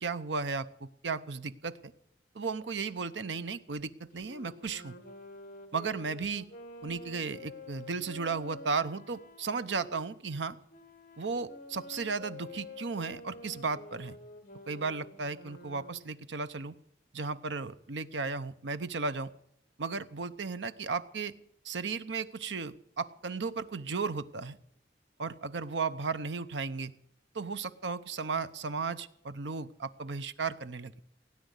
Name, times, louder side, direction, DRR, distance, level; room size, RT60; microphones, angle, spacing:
voice 1, 0.0-1.9 2.3-4.9 5.7-6.5 6.8-10.6 11.2-14.2 14.7-16.8 17.1-19.3 19.8-21.3 21.6-24.6 25.2-26.9 27.3-31.0, right 4 dB, 85° right, 13 dB, 0.8 m, -35 dB
Wind instrument woodwind instrument, 4.1-9.9 10.7-16.1, left 2 dB, 50° left, 1.9 m, -48 dB
17.0 x 9.5 x 8.0 m, 0.73 s
head